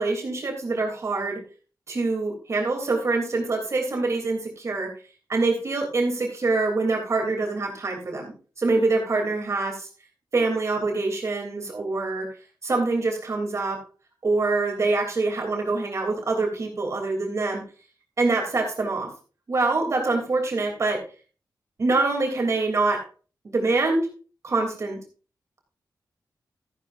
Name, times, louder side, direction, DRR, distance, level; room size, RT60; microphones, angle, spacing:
voice 1, 0.0-1.4 1.9-4.9 5.3-8.3 8.6-9.9 10.3-12.3 12.6-13.8 14.2-17.6 18.2-19.1 19.5-21.0 21.8-23.0 23.4-24.1 24.4-25.0, right 3 dB, 40° right, 1 dB, 3.1 m, -25 dB
14.0 x 11.0 x 2.6 m, 0.37 s
wide cardioid pair, 165°, 7 cm